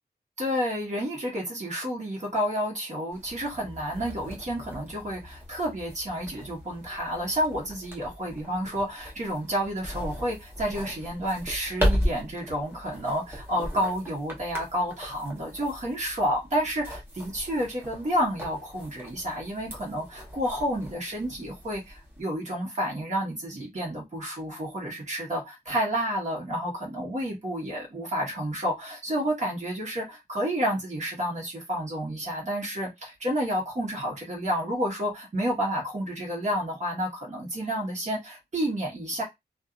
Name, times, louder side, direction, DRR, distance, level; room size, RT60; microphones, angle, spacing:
voice 1, 0.4-39.2, equal, 40° right, 1.3 m, -30 dB
sound 1, 3.1-22.2, equal, 15° right, 0.9 m, -36 dB
2.6 x 2.4 x 2.4 m
wide cardioid pair, 130°, 18 cm